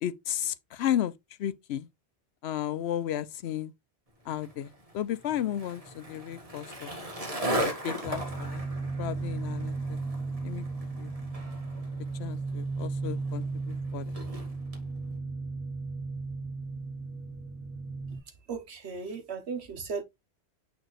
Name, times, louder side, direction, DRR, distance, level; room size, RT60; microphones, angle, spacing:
voice 1, 0.0-1.1 1.4-1.9 2.4-3.7 4.3-6.9 7.5-8.6 9.0-10.0 10.4-10.7 11.0-11.1 12.2-14.1, left 11 dB, 75° left, 0.8 m, -33 dB
Skateboard, 4.3-14.8, right 1 dB, 35° right, 1.7 m, -38 dB
sound 1, 8.0-18.2, right 3 dB, 10° right, 2.5 m, -35 dB
voice 2, 18.5-20.0, right 5 dB, 75° right, 1.4 m, -36 dB
8.9 x 3.5 x 3.1 m
omnidirectional pair, 1.1 m